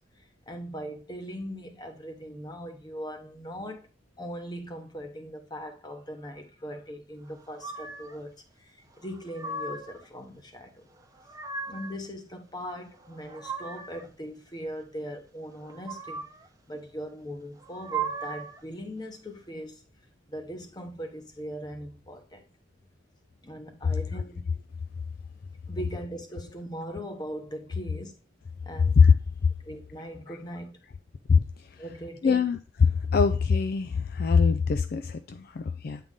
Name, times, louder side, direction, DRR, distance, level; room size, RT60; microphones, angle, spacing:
voice 1, 0.2-3.9 4.2-10.8 11.6-16.2 16.7-19.8 20.3-22.4 23.4-24.5 25.7-28.1 28.6-29.0 29.6-30.8 31.8-32.4, equal, 20° left, 0.9 m, -40 dB
sound 1, 7.6-8.2 9.0-10.0 11.0-12.0 12.9-14.1 15.6-16.5 17.6-18.6, right 4 dB, 20° right, 0.7 m, -37 dB
voice 2, 32.2-32.6 33.1-36.0, left 5 dB, 50° left, 0.3 m, -22 dB
8.6 x 3.8 x 3.6 m
head